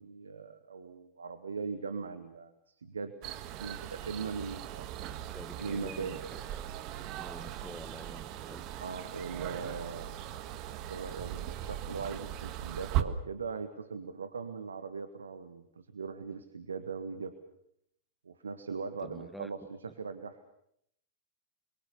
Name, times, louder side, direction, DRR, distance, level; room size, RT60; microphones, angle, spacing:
voice 1, 0.0-3.3 3.6-4.9 5.6-6.2 8.8-10.3 10.9-17.4 18.2-20.4, right 5 dB, 70° right, 10 dB, 1.6 m, -40 dB
sound 1, 3.2-13.0, right 12 dB, 40° right, 1.7 m, -39 dB
voice 2, 5.3-8.7 19.0-19.5, equal, ahead, 9 dB, 1.7 m, -48 dB
30.0 x 22.5 x 6.9 m, 0.74 s
figure-of-eight pair, 90°, 0 cm